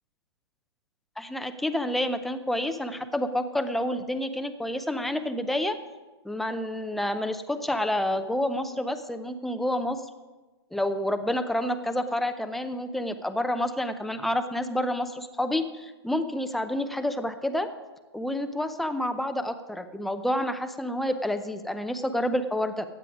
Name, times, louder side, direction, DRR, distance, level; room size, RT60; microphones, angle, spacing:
voice 1, 1.2-5.7 6.2-10.0 10.7-17.7 18.1-22.9, left 1 dB, ahead, 9 dB, 0.6 m, -29 dB
15.0 x 9.5 x 4.9 m, 1.2 s
figure-of-eight pair, 120°, 14 cm